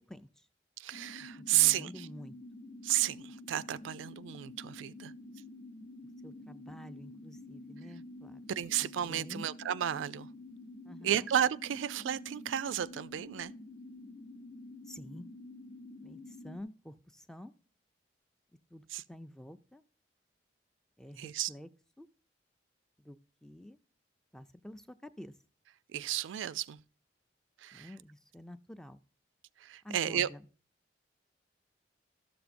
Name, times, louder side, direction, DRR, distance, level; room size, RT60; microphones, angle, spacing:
voice 1, 0.8-2.1 2.8-5.1 8.5-10.3 11.0-13.5 18.9-19.0 21.2-21.5 25.9-26.8 27.6-27.9 29.6-30.3, right 11 dB, 90° right, 0.3 m, -32 dB
sound 1, 0.9-16.6, left 2 dB, 50° left, 0.7 m, -49 dB
voice 2, 1.5-2.3 6.2-8.4 8.8-9.5 10.8-11.3 14.9-15.3 16.0-17.5 18.7-19.8 21.0-21.7 22.0-22.1 23.0-23.8 24.3-25.3 27.7-29.0 29.8-30.4, left 1 dB, 5° left, 0.3 m, -49 dB
12.5 x 6.9 x 2.5 m
head